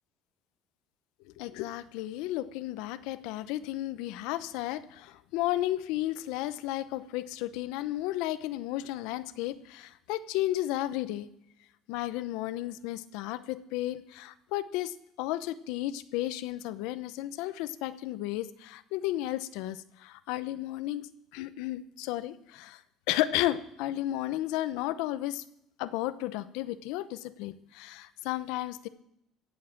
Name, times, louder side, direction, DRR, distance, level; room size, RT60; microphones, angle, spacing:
voice 1, 1.4-11.3 11.9-21.0 21.3-22.8 23.1-25.4 25.8-28.9, left 15 dB, 85° left, 14 dB, 0.8 m, -33 dB
16.5 x 7.4 x 7.3 m, 0.78 s
cardioid pair, 130°, 0 cm